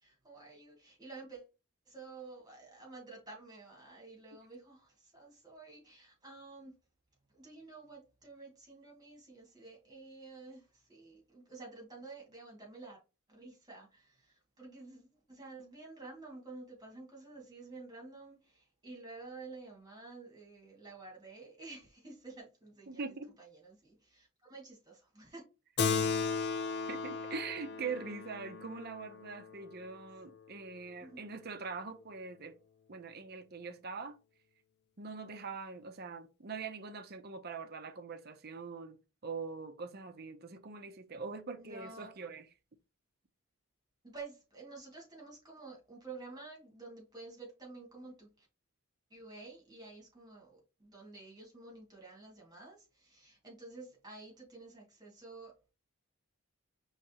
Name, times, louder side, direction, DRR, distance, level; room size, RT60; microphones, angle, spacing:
voice 1, 0.0-1.5 1.9-6.7 7.3-13.0 13.3-25.4 31.0-31.2 41.6-42.1 44.0-48.5 49.1-55.7, right 3 dB, 20° right, 1.9 m, -51 dB
voice 2, 22.9-23.3 26.9-32.6 32.9-34.2 35.0-42.5, right 4 dB, 45° right, 0.6 m, -43 dB
Keyboard (musical), 25.8-30.7, left 5 dB, 50° left, 0.4 m, -36 dB
5.1 x 3.2 x 2.8 m
head